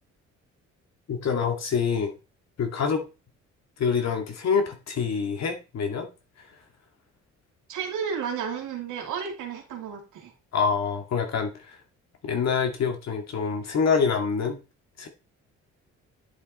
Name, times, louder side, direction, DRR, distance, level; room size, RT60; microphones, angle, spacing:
voice 1, 1.1-2.1 2.6-3.0 3.8-6.1 10.5-11.8 12.2-14.6 15.0-15.1, left 6 dB, 60° left, 2.2 m, -26 dB
voice 2, 7.7-10.3, right 7 dB, 80° right, 2.5 m, -32 dB
10.0 x 5.3 x 4.2 m
cardioid pair, 90°, 30 cm